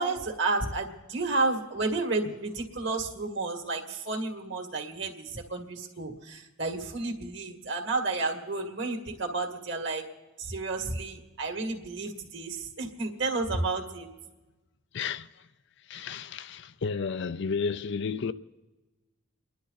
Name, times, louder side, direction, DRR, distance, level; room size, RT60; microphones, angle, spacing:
voice 1, 0.0-10.0 10.4-14.1, right 3 dB, 55° right, 2.1 m, -31 dB
voice 2, 14.9-15.3 15.9-18.3, left 5 dB, 55° left, 0.4 m, -32 dB
29.5 x 11.0 x 4.1 m
head